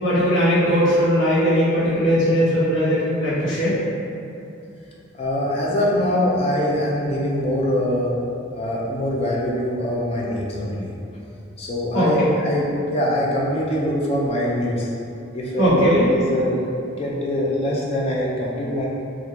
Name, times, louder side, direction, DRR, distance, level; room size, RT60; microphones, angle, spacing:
voice 1, 0.0-3.7 11.9-12.1 15.6-16.1, equal, 75° left, -10 dB, 1.2 m, -19 dB
voice 2, 5.1-8.1 8.6-10.9 11.6-14.9 15.3-18.9, left 1 dB, 30° left, -4 dB, 0.3 m, -23 dB
3.6 x 2.4 x 2.9 m, 2.7 s
head